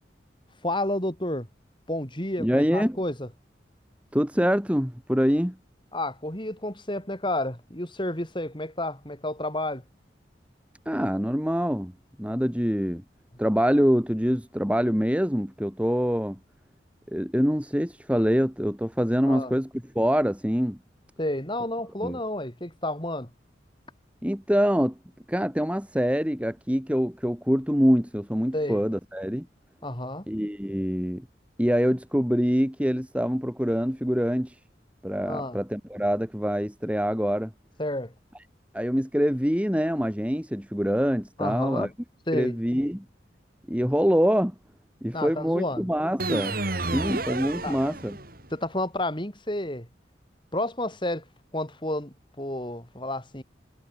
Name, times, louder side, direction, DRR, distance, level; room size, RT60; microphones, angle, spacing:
voice 1, 0.6-1.5 1.9-3.3 5.9-9.8 19.2-19.5 21.2-23.3 28.5-28.8 29.8-30.2 35.3-35.6 37.8-38.1 41.4-41.9 42.3-42.6 45.1-45.9 47.6-47.8 48.5-49.9 50.5-51.2 51.5-53.4, left 1 dB, 25° left, 5.7 m, -30 dB
voice 2, 2.4-3.0 4.1-5.6 10.9-11.9 12.2-13.0 13.4-16.4 17.1-19.7 19.9-20.8 22.0-22.2 24.2-24.9 25.3-29.5 30.3-31.2 31.6-34.5 35.0-37.5 38.7-41.9 42.3-43.0 43.7-44.5 45.0-46.6 46.9-48.2, equal, 5° right, 2.9 m, -25 dB
sound 1, 46.2-48.5, right 2 dB, 50° right, 6.2 m, -30 dB
head